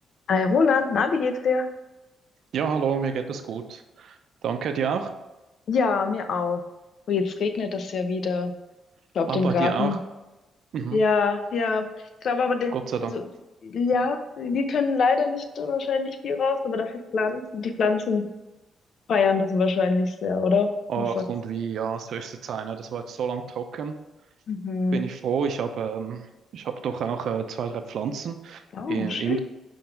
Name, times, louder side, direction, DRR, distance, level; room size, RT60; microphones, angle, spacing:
voice 1, 0.3-1.7 5.7-6.6 7.1-8.5 9.1-10.0 10.9-11.9 12.2-12.7 13.1-13.2 13.6-18.3 19.1-21.2 24.5-25.0 28.7-29.4, left 4 dB, 65° left, 8 dB, 0.6 m, -24 dB
voice 2, 2.5-5.1 9.3-10.0 10.7-11.0 12.7-13.1 20.9-24.0 24.9-26.3 26.5-29.4, right 7 dB, 70° right, 7 dB, 0.6 m, -29 dB
5.3 x 3.9 x 4.5 m, 1.0 s
cardioid pair, 100°, 0 cm